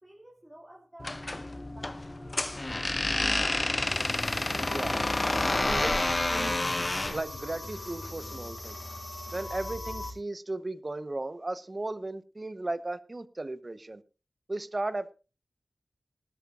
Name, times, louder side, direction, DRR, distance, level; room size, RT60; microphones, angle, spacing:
voice 1, 0.0-3.4, right 1 dB, 15° right, 2.5 m, -51 dB
sound 1, 1.0-7.2, left 2 dB, 30° left, 0.6 m, -29 dB
sound 2, 3.8-10.1, left 1 dB, 45° left, 4.6 m, -40 dB
voice 2, 4.5-5.0 5.6-6.0 6.3-8.8 9.3-14.0 14.5-15.1, right 2 dB, 35° right, 1.0 m, -36 dB
19.5 x 12.5 x 2.5 m
wide cardioid pair, 90°, 0 cm